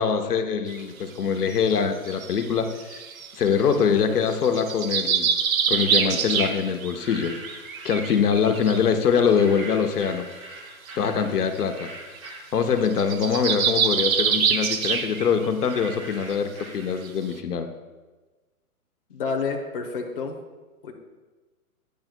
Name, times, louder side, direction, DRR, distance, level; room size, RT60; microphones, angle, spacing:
voice 1, 0.0-3.0 3.4-5.3 5.7-7.3 7.8-10.2 11.0-11.9 12.5-17.7, left 6 dB, 85° left, 6 dB, 1.1 m, -23 dB
sound 1, 0.7-0.8 1.5-3.8 4.3-6.9 7.2-8.8 9.3-9.4 9.6-9.8 10.9-11.0 11.2-11.3 11.6-11.8 12.2-12.3 12.6-15.5 15.8-15.9 16.3-16.4 17.0-17.1, right 7 dB, 65° right, 0.9 m, -25 dB
sound 2, 6.8-8.0 9.0-13.2 13.6-17.3, right 2 dB, 20° right, 1.0 m, -43 dB
voice 2, 19.1-20.4 20.8-20.9, left 4 dB, 35° left, 1 dB, 0.9 m, -29 dB
13.5 x 9.5 x 2.2 m, 1.2 s
hypercardioid pair, 175°, 45 cm